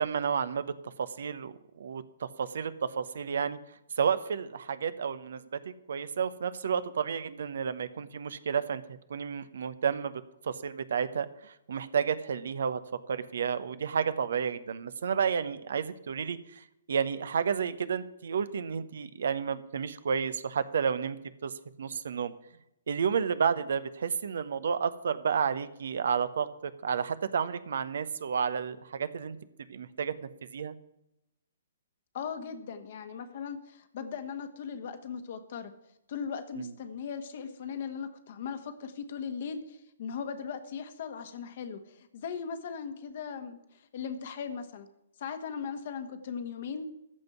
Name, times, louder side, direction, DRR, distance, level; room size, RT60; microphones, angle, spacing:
voice 1, 0.0-3.6 4.0-21.2 21.4-21.5 21.8-22.3 22.9-29.4 29.7-30.7 36.6-36.7, right 7 dB, 55° right, 14 dB, 0.8 m, -31 dB
voice 2, 32.1-35.7 36.1-44.9 45.2-46.9, left 6 dB, 45° left, 9 dB, 1.5 m, -38 dB
14.0 x 5.2 x 9.4 m, 0.84 s
figure-of-eight pair, 120°, 0 cm